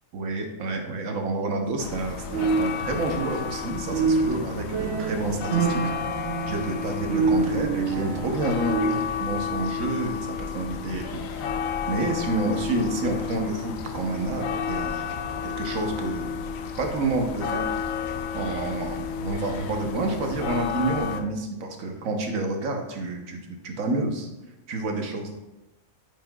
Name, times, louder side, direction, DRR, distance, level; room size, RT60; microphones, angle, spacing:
voice 1, 0.1-5.8 6.5-11.5 11.9-16.4 16.8-17.6 18.3-24.3 24.7-25.3, right 2 dB, 80° right, 3 dB, 1.3 m, -29 dB
sound 1, 1.8-21.2, left 6 dB, 90° left, 1.0 m, -32 dB
sound 2, 2.3-3.7 3.9-9.2, right 4 dB, 60° right, 0.9 m, -27 dB
9.1 x 5.3 x 2.2 m, 1.0 s
omnidirectional pair, 1.4 m